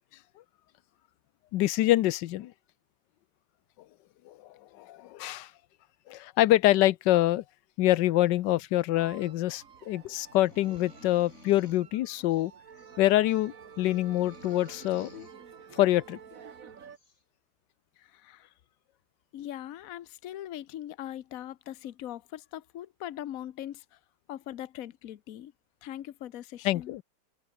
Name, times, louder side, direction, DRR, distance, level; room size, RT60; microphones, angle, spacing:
voice 1, 1.5-2.5 4.3-4.4 4.8-5.5 6.1-7.4 7.8-12.5 13.0-15.3 15.7-16.2 26.6-27.0, left 15 dB, 90° left, 1.3 m, -25 dB
sound 1, 9.0-17.0, right 7 dB, 55° right, 1.8 m, -50 dB
sound 2, 10.2-11.9 12.3-13.0 13.3-15.3 16.5-16.6 16.9-17.2, left 2 dB, 40° left, 5.2 m, -54 dB
voice 2, 18.0-18.5 19.3-24.0 24.3-25.5 25.8-26.9, left 12 dB, 60° left, 1.2 m, -41 dB
omnidirectional pair, 1.8 m